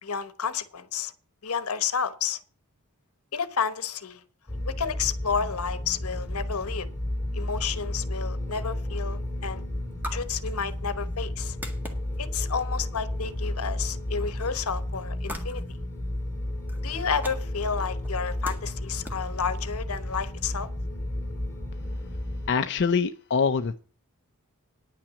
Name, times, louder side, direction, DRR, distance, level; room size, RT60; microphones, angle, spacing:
voice 1, 0.0-1.1 1.4-2.4 3.3-4.2 4.7-6.9 7.3-9.6 10.1-11.6 12.2-15.8 16.8-20.7, left 6 dB, 75° left, 1.0 m, -31 dB
sound 1, 4.5-22.5, left 1 dB, 10° left, 2.9 m, -32 dB
sound 2, 8.4-20.1, equal, 10° right, 1.8 m, -46 dB
voice 2, 22.5-23.8, left 5 dB, 55° left, 0.5 m, -24 dB
9.9 x 5.9 x 8.3 m
head